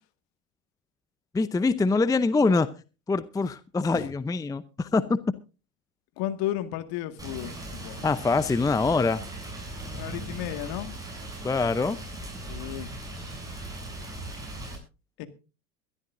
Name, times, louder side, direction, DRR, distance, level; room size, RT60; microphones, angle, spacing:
voice 1, 1.3-2.7 3.1-5.2 8.0-9.2 11.4-12.0, left 3 dB, 10° left, 0.6 m, -24 dB
voice 2, 6.2-8.1 9.9-10.9 12.5-12.9 15.2-15.3, left 13 dB, 55° left, 1.9 m, -33 dB
Rain, 7.2-14.8, right 1 dB, 10° right, 7.6 m, -38 dB
22.5 x 13.5 x 2.6 m
hypercardioid pair, 85°, 45 cm